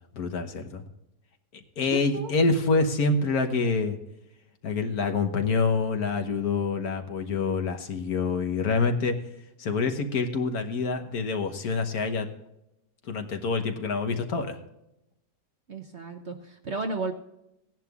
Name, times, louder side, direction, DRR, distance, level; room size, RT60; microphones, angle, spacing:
voice 1, 0.1-0.8 1.5-4.0 4.6-9.2 9.6-12.3 13.1-14.6, left 4 dB, 60° left, 6 dB, 1.4 m, -26 dB
voice 2, 15.7-17.1, right 3 dB, 50° right, 4 dB, 0.9 m, -33 dB
16.5 x 10.5 x 2.4 m, 0.87 s
omnidirectional pair, 1.9 m